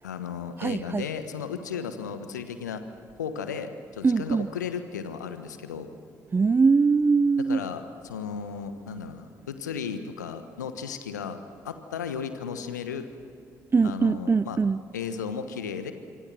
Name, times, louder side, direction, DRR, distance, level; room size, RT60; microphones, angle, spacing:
voice 1, 0.0-2.8 3.2-5.9 7.5-11.4 11.6-13.0 13.8-14.6 14.9-15.9, left 6 dB, 85° left, 1.2 m, -35 dB
voice 2, 0.6-1.1 4.0-4.5 6.3-7.7 13.7-14.8, right 4 dB, 25° right, 0.5 m, -22 dB
27.5 x 25.0 x 6.2 m
figure-of-eight pair, 45°, 9 cm